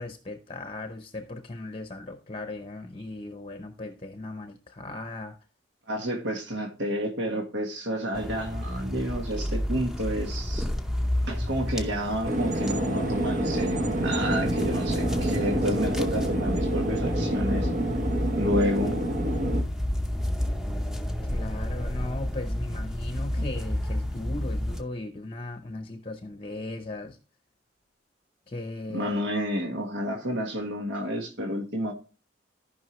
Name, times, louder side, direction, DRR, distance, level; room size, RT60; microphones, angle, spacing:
voice 1, 0.0-5.3 21.3-27.2 28.5-29.2, left 2 dB, 30° left, 0.7 m, -37 dB
voice 2, 5.9-10.7 11.3-17.7 18.3-19.0 23.3-23.4 28.9-31.9, equal, 70° right, 1.5 m, -30 dB
sound 1, 8.1-24.8, left 1 dB, 5° right, 0.7 m, -31 dB
sound 2, 12.2-19.6, right 1 dB, 45° right, 1.0 m, -28 dB
14.5 x 5.5 x 3.0 m
head